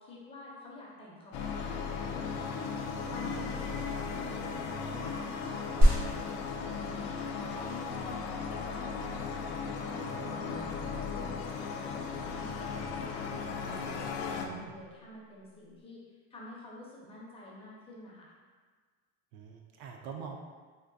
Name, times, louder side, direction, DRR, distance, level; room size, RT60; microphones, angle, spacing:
voice 1, 0.0-2.5 3.1-16.0 16.3-18.3, left 2 dB, 20° left, -5 dB, 0.5 m, -49 dB
sound 1, 1.3-14.5, left 5 dB, 85° left, 0.5 m, -36 dB
voice 2, 3.1-3.5 10.0-10.8 14.4-14.8 19.3-20.4, right 5 dB, 55° right, 2 dB, 0.4 m, -45 dB
sound 2, 5.8-15.8, equal, 75° right, 1.3 m, -33 dB
3.6 x 2.5 x 2.6 m, 1.5 s
cardioid pair, 145°, 31 cm